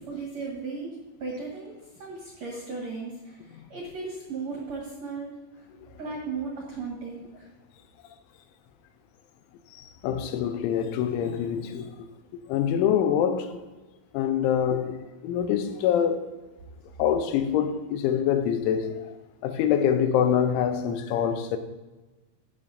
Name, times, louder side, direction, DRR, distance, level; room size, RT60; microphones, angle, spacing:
voice 1, 0.0-1.7 2.0-5.3 6.0-7.5, right 4 dB, 60° right, 1.8 m, -36 dB
voice 2, 9.7-12.1 12.3-13.6 14.1-16.3 17.0-19.2 19.4-21.6, left 9 dB, 90° left, 3.2 m, -25 dB
12.0 x 8.6 x 2.6 m
omnidirectional pair, 5.3 m